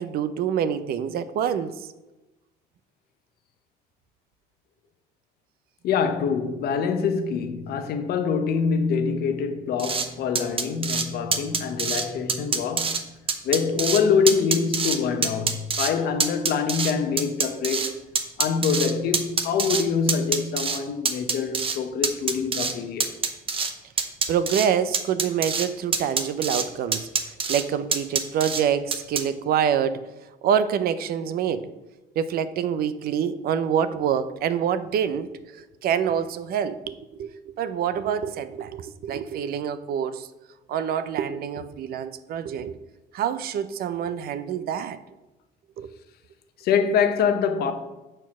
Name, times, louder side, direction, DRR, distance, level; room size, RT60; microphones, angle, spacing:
voice 1, 0.0-1.7 24.3-27.1 27.5-30.0 30.4-31.7 32.2-35.3 35.8-40.3 40.7-42.8 43.1-45.0 45.8-45.9, right 8 dB, 65° right, 0.6 m, -26 dB
voice 2, 5.8-13.0 13.4-18.0 18.4-23.1 46.6-47.7, left 6 dB, 70° left, 0.9 m, -25 dB
sound 1, 9.8-10.1 10.4-11.1 11.3-12.0 12.3-13.0 13.3-14.0 14.3-15.0 15.2-15.9 16.2-17.9 18.2-19.8 20.1-20.8 21.1-21.8 22.0-22.7 23.0-23.7 24.0-24.7 24.9-25.7 25.9-26.6 26.9-27.6 27.9-28.6 28.9-29.2, right 5 dB, 35° right, 0.8 m, -25 dB
6.1 x 4.5 x 6.0 m
cardioid pair, 110°, 17 cm